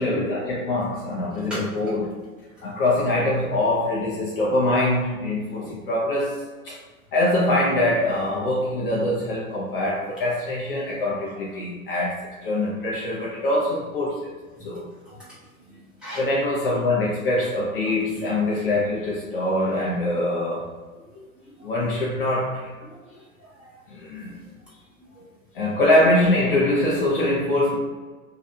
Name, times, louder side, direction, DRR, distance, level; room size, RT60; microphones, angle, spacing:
voice 1, 0.0-2.2 2.6-6.8 7.1-14.3 14.6-14.9 16.2-20.7 21.6-22.7 23.9-24.3 25.5-27.8, left 1 dB, 40° left, -4 dB, 0.6 m, -23 dB
voice 2, 15.7-16.2 21.1-21.8 22.8-23.7 24.2-24.4 25.1-25.2, equal, ahead, -11 dB, 1.0 m, -40 dB
2.7 x 2.4 x 3.3 m, 1.4 s
figure-of-eight pair, 105°, 43 cm